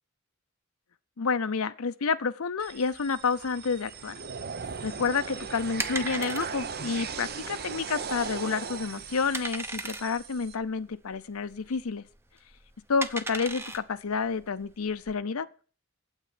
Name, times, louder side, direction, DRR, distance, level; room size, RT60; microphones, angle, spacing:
voice 1, 1.2-4.1 4.8-12.0 12.9-15.5, left 5 dB, 80° left, 0.6 m, -29 dB
sound 1, 2.6-10.5, right 6 dB, 50° right, 0.8 m, -38 dB
sound 2, 4.5-15.2, right 2 dB, 10° right, 0.8 m, -39 dB
9.1 x 8.2 x 8.5 m
head